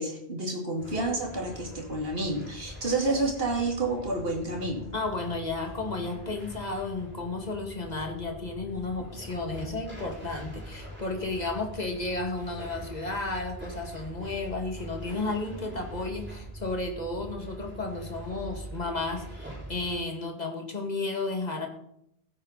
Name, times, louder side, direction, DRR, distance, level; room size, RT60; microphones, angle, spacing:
voice 1, 0.0-4.8, right 2 dB, 60° right, 2 dB, 2.7 m, -29 dB
sound 1, 0.8-20.0, equal, 10° right, 5.8 m, -43 dB
voice 2, 4.9-21.7, left 3 dB, 40° left, 3 dB, 2.2 m, -33 dB
16.0 x 9.0 x 4.1 m, 0.73 s
omnidirectional pair, 1.1 m